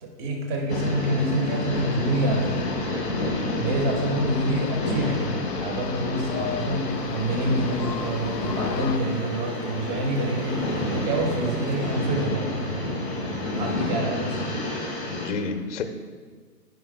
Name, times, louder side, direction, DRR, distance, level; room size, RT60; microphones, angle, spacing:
voice 1, 0.0-2.7 3.6-12.7 13.6-14.5, right 1 dB, 30° right, 2 dB, 1.4 m, -27 dB
sound 1, 0.7-15.3, left 1 dB, 5° right, 0.4 m, -30 dB
sound 2, 1.7-9.0, left 8 dB, 85° left, 0.6 m, -33 dB
sound 3, 6.9-11.9, right 2 dB, 85° right, 1.4 m, -41 dB
voice 2, 13.3-13.9 14.7-15.8, left 4 dB, 45° left, 7 dB, 0.7 m, -31 dB
15.5 x 5.3 x 2.2 m, 1.5 s
hypercardioid pair, 140°, 48 cm